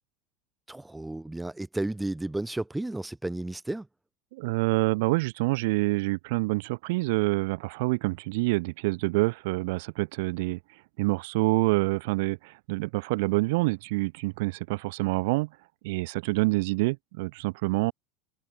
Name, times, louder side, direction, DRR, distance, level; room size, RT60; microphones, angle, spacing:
voice 1, 0.7-3.9, right 2 dB, 10° right, 1.2 m, -33 dB
voice 2, 4.3-10.6 11.0-15.5 15.8-17.9, right 24 dB, 65° right, 1.9 m, -27 dB
open air
hypercardioid pair, 80°, 0 cm